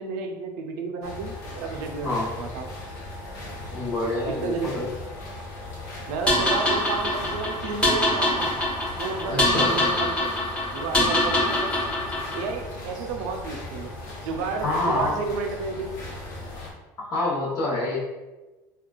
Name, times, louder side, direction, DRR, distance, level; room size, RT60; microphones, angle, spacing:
voice 1, 0.0-2.7 4.3-4.9 6.1-8.5 9.0-10.4 10.7-11.7 12.3-13.9 14.2-15.9, right 4 dB, 85° right, 4 dB, 0.4 m, -31 dB
sound 1, 1.0-16.7, left 2 dB, 85° left, 0.9 m, -38 dB
voice 2, 3.7-4.9 9.3-9.8 14.6-15.2 17.0-18.0, left 2 dB, 45° left, -6 dB, 1.0 m, -27 dB
sound 2, 6.3-12.5, left 1 dB, 15° left, 0.9 m, -24 dB
3.6 x 2.3 x 2.3 m, 1.1 s
supercardioid pair, 115°, 9 cm